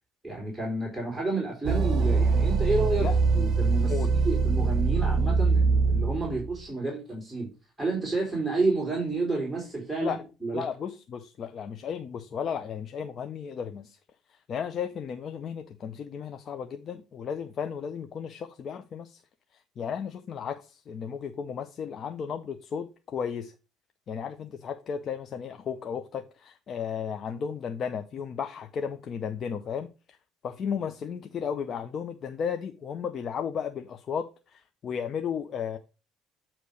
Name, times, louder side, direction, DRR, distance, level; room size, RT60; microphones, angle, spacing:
voice 1, 0.2-3.9 4.3-7.5 7.8-10.6, right 3 dB, 5° right, 3.4 m, -30 dB
sound 1, 1.6-6.6, right 4 dB, 55° right, 0.9 m, -23 dB
voice 2, 10.5-14.0 14.3-19.2 19.5-23.5 24.1-30.2 30.4-35.8, left 7 dB, 50° left, 0.6 m, -34 dB
8.4 x 3.0 x 6.2 m
cardioid pair, 95°, 0 cm